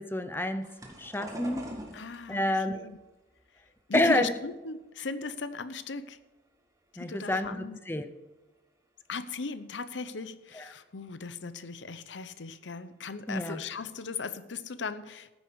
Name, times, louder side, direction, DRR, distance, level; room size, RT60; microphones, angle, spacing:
voice 1, 0.0-1.7 2.3-2.9 3.9-4.3 7.0-8.1 10.5-10.6 13.3-13.6, left 1 dB, 10° left, 0.7 m, -29 dB
sound 1, 0.6-5.7 6.1-7.0 7.5-8.1 9.4-9.5 10.0-10.1 10.7-10.8 10.9-11.3 12.5-12.7 13.2-13.3 13.8-14.2, equal, 20° right, 1.7 m, -46 dB
voice 2, 1.9-3.0 3.9-6.2 7.0-7.8 9.1-15.3, left 4 dB, 85° left, 0.7 m, -37 dB
13.0 x 9.4 x 4.7 m
head